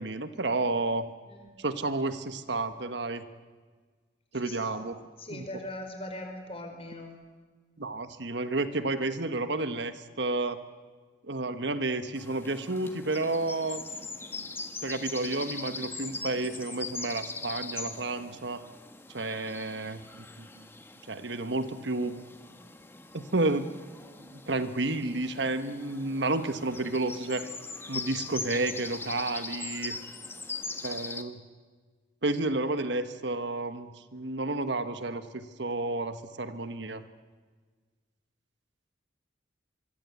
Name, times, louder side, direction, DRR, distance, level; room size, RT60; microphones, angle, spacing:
voice 1, 0.0-1.0 1.6-3.2 4.3-4.9 5.3-5.4 7.8-10.6 11.3-13.8 14.8-18.7 19.1-20.7 21.1-22.2 23.1-23.7 24.2-27.5 27.9-30.0 30.8-31.4 32.2-37.0, right 2 dB, 65° right, 10 dB, 1.4 m, -31 dB
voice 2, 4.3-4.8 5.2-7.2, left 1 dB, 30° left, 4 dB, 5.0 m, -40 dB
sound 1, 12.2-31.2, left 3 dB, 10° left, 1.5 m, -41 dB
25.5 x 23.5 x 8.4 m, 1.5 s
head